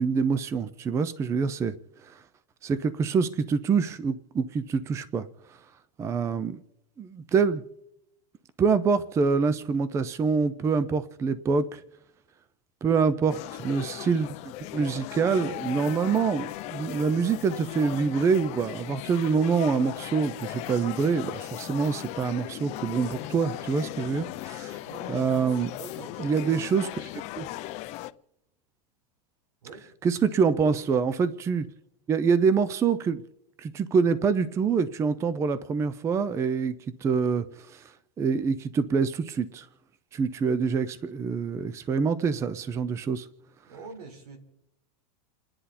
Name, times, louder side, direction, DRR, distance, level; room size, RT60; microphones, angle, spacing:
voice 1, 0.0-1.7 2.0-2.2 2.6-5.6 6.0-6.6 7.0-7.6 8.6-11.8 12.8-14.4 14.7-24.8 25.1-25.7 26.2-26.9 27.1-27.5 30.0-31.7 32.1-33.2 33.6-36.7 37.0-39.7 40.1-43.3, right 5 dB, 15° right, 0.5 m, -26 dB
sound 1, 13.3-28.1, left 16 dB, 35° left, 0.6 m, -38 dB
voice 2, 24.8-26.6 29.6-29.9 43.6-44.4, right 4 dB, 75° right, 4.2 m, -45 dB
30.0 x 10.0 x 4.2 m
supercardioid pair, 150°, 20 cm